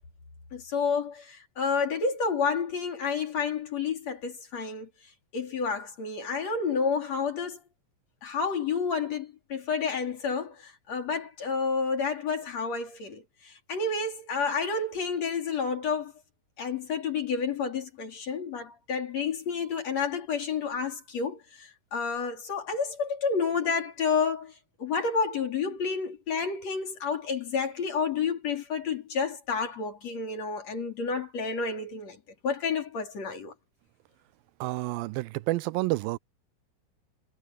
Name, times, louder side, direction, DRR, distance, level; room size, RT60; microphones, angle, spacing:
voice 1, 0.5-4.9 5.3-7.6 8.2-16.1 16.6-24.5 24.8-32.2 32.4-33.5, left 5 dB, 50° left, 4.5 m, -30 dB
voice 2, 34.6-36.2, right 19 dB, 90° right, 2.4 m, -29 dB
omnidirectional pair, 4.0 m